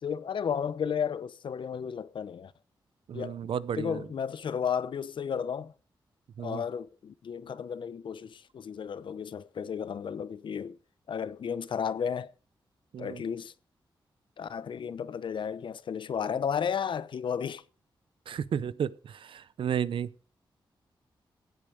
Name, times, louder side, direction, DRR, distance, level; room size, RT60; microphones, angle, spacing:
voice 1, 0.0-2.5 3.1-3.4 3.7-5.7 6.4-10.8 11.1-12.3 13.0-13.5 14.4-17.6, left 7 dB, 70° left, 0.8 m, -33 dB
voice 2, 3.1-4.0 6.4-6.6 12.9-13.2 18.3-20.1, right 8 dB, 80° right, 0.6 m, -33 dB
16.5 x 8.9 x 5.0 m
wide cardioid pair, 105°, 9 cm